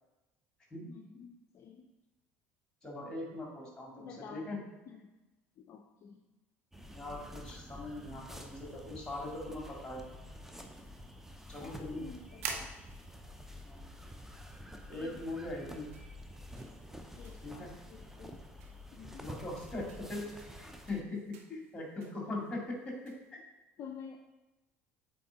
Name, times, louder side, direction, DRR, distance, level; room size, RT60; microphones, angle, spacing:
voice 1, 0.9-1.9 4.0-4.5 4.9-5.1 5.6-6.2 11.6-12.7 15.0-15.2 17.2-18.4 18.9-19.2 21.5-21.9 23.8-24.2, left 7 dB, 45° left, 4 dB, 0.5 m, -50 dB
voice 2, 2.8-4.6 6.9-10.1 11.5-12.1 13.6-13.8 14.9-15.9 17.4-17.7 19.2-20.3 20.6-23.4, left 2 dB, 15° left, -1 dB, 2.2 m, -41 dB
sound 1, 6.7-21.0, equal, 5° right, 0.7 m, -49 dB
sound 2, 6.8-23.3, right 6 dB, 70° right, 0.7 m, -52 dB
7.7 x 3.7 x 3.9 m, 1.1 s
figure-of-eight pair, 65°, 7 cm